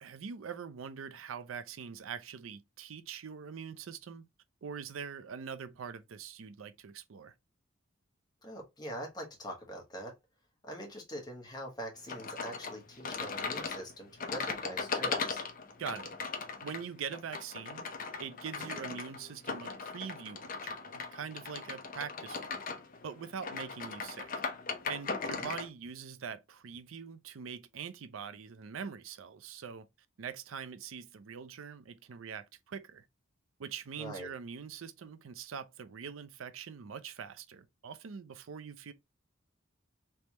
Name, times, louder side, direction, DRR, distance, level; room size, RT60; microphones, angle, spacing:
voice 1, 0.0-4.3 4.6-7.3 15.8-16.1 16.6-17.9 18.2-22.6 23.0-24.3 24.9-29.9 30.2-33.0 33.6-38.9, right 6 dB, 85° right, 0.5 m, -43 dB
voice 2, 8.4-10.1 10.6-15.4 25.4-25.5 34.0-34.3, equal, 20° left, 1.3 m, -43 dB
sound 1, 12.1-25.7, left 4 dB, 45° left, 0.7 m, -38 dB
3.4 x 3.2 x 2.9 m
head